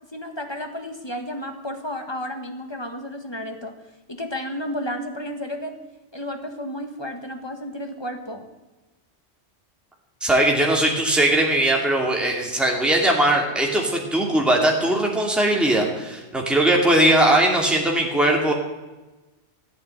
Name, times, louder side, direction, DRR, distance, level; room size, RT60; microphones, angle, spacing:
voice 1, 0.1-3.7 4.1-5.7 6.1-8.4, left 1 dB, 25° left, 5 dB, 1.6 m, -32 dB
voice 2, 10.2-18.5, right 1 dB, ahead, -1 dB, 2.5 m, -20 dB
15.5 x 8.8 x 8.9 m, 1.1 s
omnidirectional pair, 1.2 m